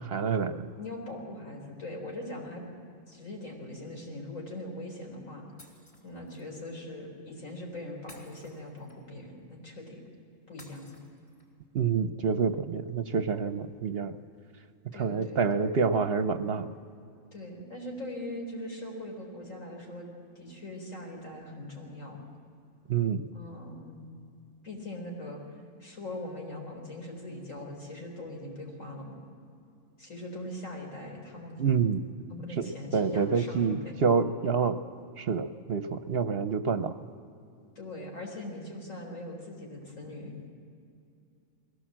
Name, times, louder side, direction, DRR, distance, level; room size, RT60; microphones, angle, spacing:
voice 1, 0.0-0.7 11.7-14.1 14.9-16.7 22.9-23.2 31.6-32.0 32.6-34.8 35.2-37.0, right 5 dB, 55° right, 10 dB, 0.8 m, -27 dB
voice 2, 0.7-2.6 3.1-5.4 6.0-10.0 10.5-10.9 14.9-15.5 17.3-20.1 20.4-22.2 23.3-24.1 24.6-25.4 25.8-29.2 30.0-31.6 32.3-33.9 37.8-40.5, left 1 dB, 75° left, 0 dB, 4.4 m, -41 dB
Shatter, 5.6-6.5 8.1-9.2 10.6-11.6, left 1 dB, 45° left, 4.4 m, -55 dB
21.0 x 17.0 x 7.5 m, 2.5 s
omnidirectional pair, 1.3 m